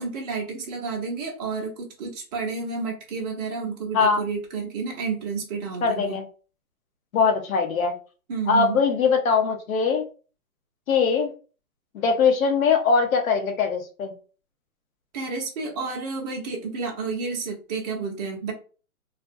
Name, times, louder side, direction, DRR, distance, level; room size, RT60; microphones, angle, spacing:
voice 1, 0.0-6.2 8.3-8.8 15.1-18.5, right 4 dB, 30° right, -1 dB, 0.7 m, -30 dB
voice 2, 5.8-6.2 7.1-7.9 8.5-10.0 10.9-11.3 11.9-14.1, left 5 dB, 65° left, 4 dB, 0.8 m, -21 dB
2.4 x 2.1 x 2.5 m, 0.37 s
hypercardioid pair, 145°, 45 cm